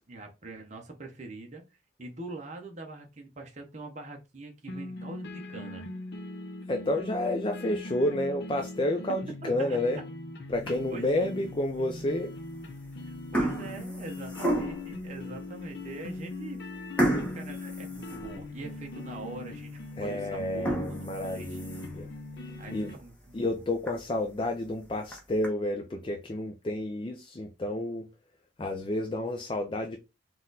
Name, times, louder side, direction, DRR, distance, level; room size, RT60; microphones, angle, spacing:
voice 1, 0.1-5.8 9.4-9.8 10.9-11.4 13.0-16.6 17.0-21.6 22.6-23.6, right 2 dB, 35° right, 0.8 m, -43 dB
sound 1, 4.7-22.9, left 2 dB, 55° left, 0.7 m, -41 dB
voice 2, 6.7-10.0 10.5-12.3 20.0-22.1 22.5-22.9 23.3-28.1 28.6-30.0, left 1 dB, 25° left, 0.4 m, -30 dB
sound 2, 10.5-11.1 11.6-11.7 12.6-12.8 13.1-15.0 15.6-15.7 16.0-16.2 17.0-18.7 19.1-19.2 19.7-19.8 20.4-22.1 22.5-22.6 23.0-23.1 23.5-23.6 23.9-24.0 24.9-25.5, right 1 dB, 5° left, 1.0 m, -32 dB
4.2 x 2.5 x 3.9 m
head